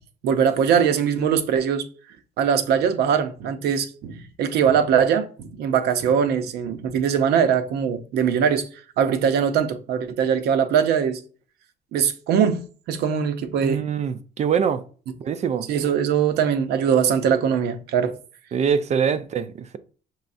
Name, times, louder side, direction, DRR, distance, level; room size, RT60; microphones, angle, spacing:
voice 1, 0.2-1.9 2.4-8.7 9.0-11.2 11.9-12.6 12.9-13.8 15.7-18.2, right 7 dB, 75° right, 0.7 m, -21 dB
voice 2, 13.6-14.8 15.2-15.7 18.5-19.8, right 7 dB, 40° right, 0.4 m, -24 dB
5.6 x 3.1 x 2.6 m
cardioid pair, 110°, 17 cm